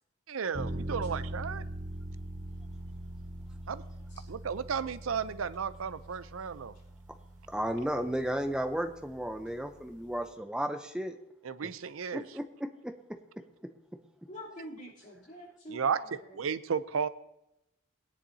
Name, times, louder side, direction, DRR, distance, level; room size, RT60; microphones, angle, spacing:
voice 1, 0.3-1.6 3.7-3.8 4.3-6.7 11.4-12.2 15.7-16.0 16.4-17.1, right 6 dB, 90° right, 14 dB, 0.5 m, -33 dB
sound 1, 0.5-10.3, right 1 dB, 40° right, 1.2 m, -42 dB
voice 2, 7.5-11.1 11.6-11.7 12.1-12.9, equal, 5° right, 6 dB, 0.7 m, -34 dB
voice 3, 14.3-16.4, equal, 40° left, -6 dB, 3.3 m, -46 dB
19.5 x 10.0 x 2.8 m, 0.87 s
head